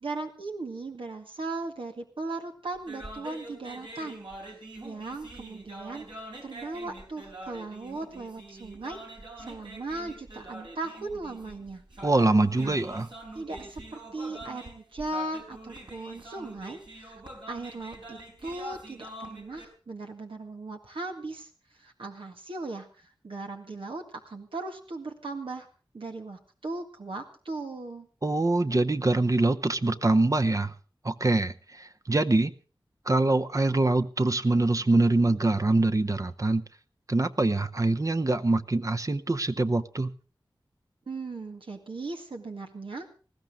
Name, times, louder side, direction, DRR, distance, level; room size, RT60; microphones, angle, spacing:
voice 1, 0.0-4.3 4.8-6.1 6.4-9.0 9.4-11.8 12.6-12.8 13.3-17.2 17.5-21.5 21.8-25.7 25.9-28.1 41.1-43.1, right 2 dB, 85° right, 1.8 m, -38 dB
sound 1, 2.8-19.7, right 1 dB, 65° right, 4.4 m, -45 dB
voice 2, 12.0-13.1 28.2-30.7 31.0-32.5 33.1-36.6 37.1-40.1, right 2 dB, 40° right, 0.9 m, -24 dB
19.5 x 15.0 x 3.7 m
wide cardioid pair, 55°, 9 cm